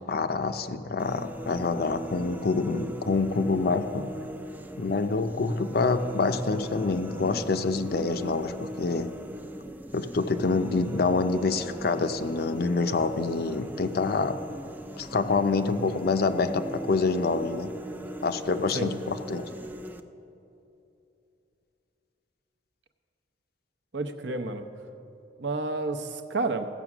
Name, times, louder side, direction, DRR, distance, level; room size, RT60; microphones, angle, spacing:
voice 1, 0.1-4.1 4.8-9.1 9.9-14.4 15.0-17.7 18.2-19.4, left 3 dB, 55° left, 9 dB, 0.5 m, -26 dB
sound 1, 1.0-20.0, right 1 dB, 10° right, 0.4 m, -40 dB
voice 2, 23.9-24.6 25.4-26.7, right 3 dB, 70° right, 7 dB, 0.7 m, -30 dB
15.5 x 7.3 x 6.0 m, 2.8 s
head